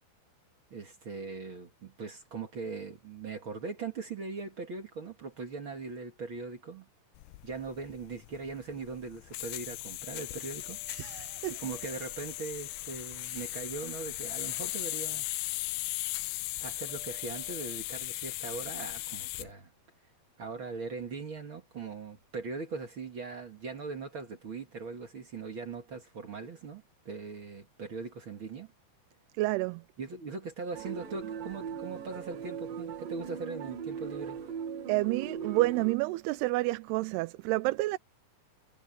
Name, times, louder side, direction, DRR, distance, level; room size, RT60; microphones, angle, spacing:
voice 1, 0.7-6.9 7.4-10.8 11.6-15.3 16.6-19.7 20.4-28.7 30.0-34.4, right 4 dB, 45° right, 2.0 m, -40 dB
sound 1, 7.2-19.5, left 19 dB, 85° left, 2.5 m, -38 dB
sound 2, 10.0-13.3 14.2-15.5 16.9-17.8, left 1 dB, 65° left, 6.3 m, -62 dB
voice 2, 10.9-11.6 13.2-13.5 29.3-29.8 34.9-38.0, right 20 dB, 90° right, 2.6 m, -30 dB
sound 3, 30.7-36.0, right 7 dB, 65° right, 4.0 m, -39 dB
omnidirectional pair, 4.5 m